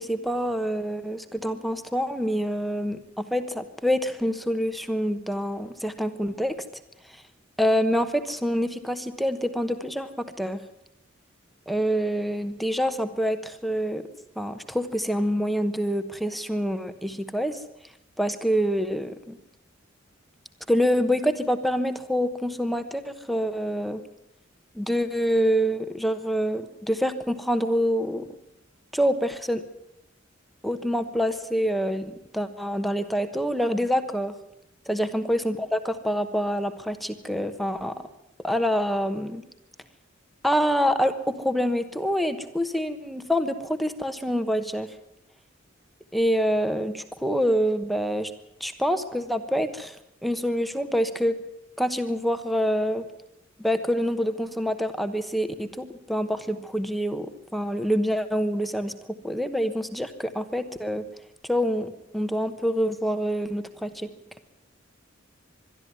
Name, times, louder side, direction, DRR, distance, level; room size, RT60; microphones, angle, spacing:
voice 1, 0.0-6.6 7.1-7.2 7.6-10.6 11.7-14.0 14.4-17.6 18.2-19.4 20.7-24.0 24.7-28.3 28.9-29.6 30.6-34.3 34.9-37.9 38.4-39.4 40.4-44.9 46.1-48.3 48.6-50.0 50.2-51.4 51.8-53.1 53.6-58.9 59.2-61.1 61.4-64.1, equal, ahead, 8 dB, 1.1 m, -26 dB
22.5 x 13.0 x 9.5 m, 0.83 s
head